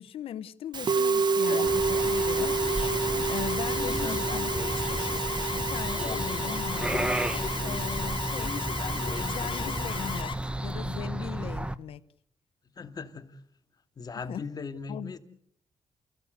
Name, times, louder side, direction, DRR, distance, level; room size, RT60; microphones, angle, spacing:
voice 1, 0.0-2.6 3.2-4.5 5.5-7.2 7.6-8.5 8.9-10.3 10.6-12.0 14.3-14.4 14.9-15.1, left 10 dB, 80° left, 1.2 m, -39 dB
Musical instrument, 0.7-10.2, right 4 dB, 50° right, 1.4 m, -30 dB
Alarm, 1.4-10.3, left 7 dB, 65° left, 3.4 m, -35 dB
sound 1, 1.7-11.8, right 1 dB, 10° right, 1.1 m, -33 dB
voice 2, 3.7-4.4 12.8-13.4 14.0-15.2, left 4 dB, 45° left, 2.6 m, -39 dB
29.5 x 16.0 x 8.2 m
cardioid pair, 80°, 9 cm